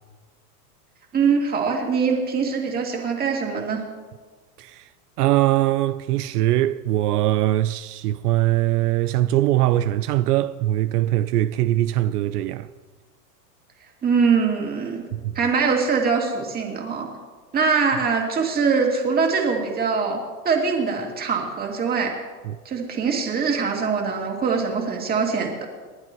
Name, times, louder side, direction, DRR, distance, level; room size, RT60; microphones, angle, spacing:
voice 1, 1.1-3.8 14.0-15.0 15.3-17.1 17.5-22.1 22.6-25.7, right 5 dB, 20° right, 2.4 m, -23 dB
voice 2, 4.6-4.9 5.2-12.7 15.1-15.3 22.4-22.6, right 14 dB, 75° right, 0.6 m, -21 dB
29.5 x 11.0 x 3.0 m
supercardioid pair, 145°, 48 cm